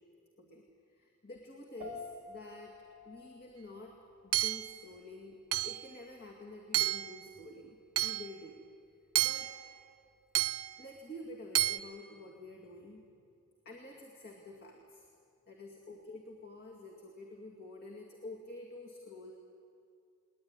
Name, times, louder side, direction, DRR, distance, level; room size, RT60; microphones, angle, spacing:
voice 1, 0.9-2.8 3.0-4.0 4.2-5.4 5.6-8.6 9.2-9.6 10.8-13.1 13.6-15.0 15.5-19.3, left 2 dB, 50° left, 0 dB, 2.3 m, -49 dB
sound 1, 1.8-11.4, left 3 dB, 40° right, 3.0 m, -54 dB
Hammer / Chink clink, 4.3-4.8 5.5-5.9 6.7-7.2 8.0-8.3 9.2-9.6 10.4-10.8 11.6-11.8, right 13 dB, 90° right, 0.6 m, -31 dB
20.5 x 20.0 x 9.9 m, 2.4 s
head